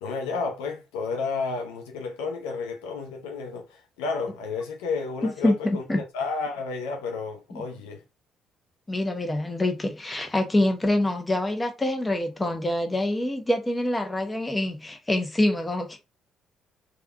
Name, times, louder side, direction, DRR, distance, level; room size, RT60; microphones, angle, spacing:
voice 1, 0.0-8.0, left 4 dB, 80° left, 0.6 m, -31 dB
voice 2, 5.2-6.0 7.5-7.6 8.9-16.0, left 1 dB, 20° left, 0.8 m, -25 dB
3.4 x 2.3 x 2.3 m
hypercardioid pair, 45°, 0 cm